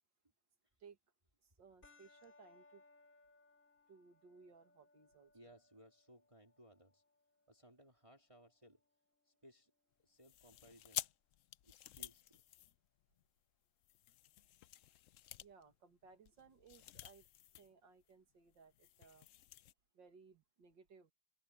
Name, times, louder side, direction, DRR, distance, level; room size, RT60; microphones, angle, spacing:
voice 1, 1.6-2.8 3.9-5.3 15.4-17.2 17.6-19.3 19.9-21.1, right 5 dB, 85° right, 2.7 m, -62 dB
sound 1, 1.8-10.8, left 3 dB, 25° left, 3.3 m, -70 dB
voice 2, 5.3-7.0 7.5-8.8 9.2-9.7 10.0-11.1 11.6-12.4, equal, 15° right, 3.2 m, -63 dB
sound 2, 10.2-13.3 13.8-17.7 18.0-18.1 18.5-19.7, left 13 dB, 80° left, 0.7 m, -51 dB
omnidirectional pair, 1.9 m